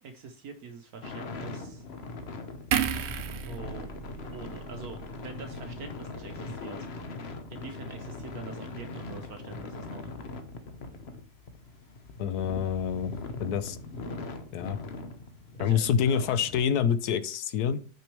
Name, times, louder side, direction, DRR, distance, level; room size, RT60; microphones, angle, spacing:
voice 1, 0.0-1.8 3.3-3.9 4.3-6.9 7.5-10.1 15.6-16.3, right 5 dB, 65° right, 6 dB, 1.1 m, -44 dB
sound 1, 1.0-16.6, left 3 dB, 45° left, 0.9 m, -41 dB
sound 2, 2.7-6.1 6.4-6.6, right 8 dB, 90° right, 0.5 m, -34 dB
voice 2, 12.2-13.1 13.4-13.8 14.5-14.8 15.6-17.8, left 8 dB, 70° left, 13 dB, 1.1 m, -27 dB
6.1 x 6.0 x 3.2 m, 0.42 s
omnidirectional pair, 1.8 m